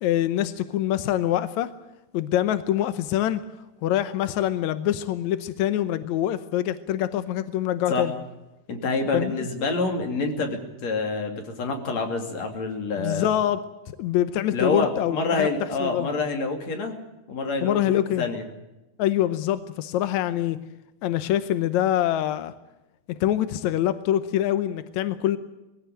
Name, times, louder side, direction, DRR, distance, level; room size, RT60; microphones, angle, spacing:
voice 1, 0.0-1.7 2.1-3.4 3.8-8.1 9.1-9.5 13.0-13.6 14.0-15.5 15.8-16.1 17.6-18.2 19.0-20.6 21.0-22.5 23.1-25.4, left 12 dB, 75° left, 12 dB, 1.7 m, -25 dB
voice 2, 8.7-13.3 14.5-17.0 17.3-18.4, left 3 dB, 50° left, 4 dB, 3.7 m, -27 dB
21.0 x 16.5 x 9.0 m, 0.98 s
omnidirectional pair, 4.3 m